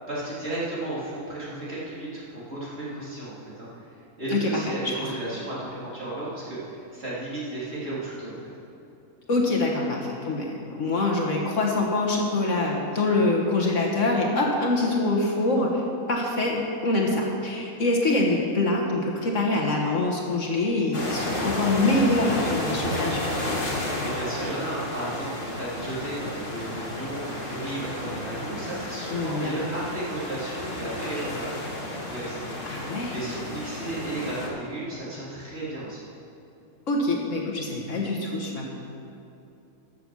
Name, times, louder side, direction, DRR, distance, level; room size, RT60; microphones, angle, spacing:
voice 1, 0.1-3.9 4.2-8.3 24.0-36.0, right 2 dB, 45° right, -8 dB, 3.4 m, -34 dB
voice 2, 4.3-4.9 9.3-15.8 16.1-23.2 29.1-29.6 32.6-33.1 36.9-38.7, left 2 dB, 55° left, -1 dB, 1.6 m, -25 dB
sound 1, 20.9-34.5, left 1 dB, 35° left, 1.7 m, -32 dB
14.0 x 6.9 x 6.2 m, 2.9 s
omnidirectional pair, 1.6 m